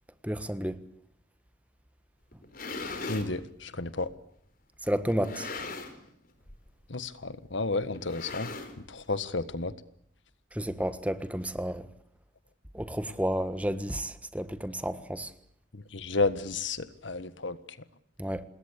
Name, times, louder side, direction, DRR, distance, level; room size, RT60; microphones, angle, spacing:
voice 1, 0.2-0.8 4.9-5.5 10.5-11.8 12.7-15.3 18.2-18.4, equal, 5° right, 1.4 m, -31 dB
sound 1, 2.3-3.3 4.1-4.2 5.1-6.1 6.4-6.7 7.0-7.1 7.9-9.0, left 3 dB, 45° left, 4.3 m, -39 dB
voice 2, 3.0-4.1 6.9-8.5 8.9-9.7 15.9-17.6, left 3 dB, 75° left, 1.6 m, -31 dB
27.5 x 21.0 x 8.3 m
head